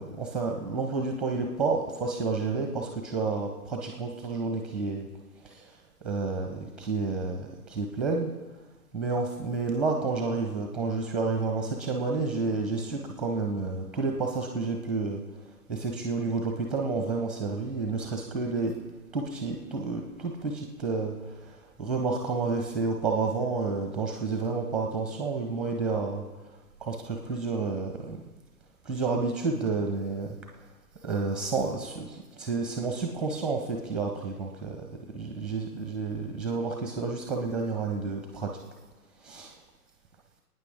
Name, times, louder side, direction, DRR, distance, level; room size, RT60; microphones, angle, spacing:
voice 1, 0.0-5.1 5.4-5.7 6.0-8.3 8.9-15.2 15.7-18.7 19.1-26.2 26.8-28.3 28.8-30.4 31.0-34.9 35.1-38.6 39.2-39.5, right 4 dB, ahead, 2 dB, 0.8 m, -30 dB
26.0 x 9.5 x 3.6 m, 1.2 s
figure-of-eight pair, 140°, 47 cm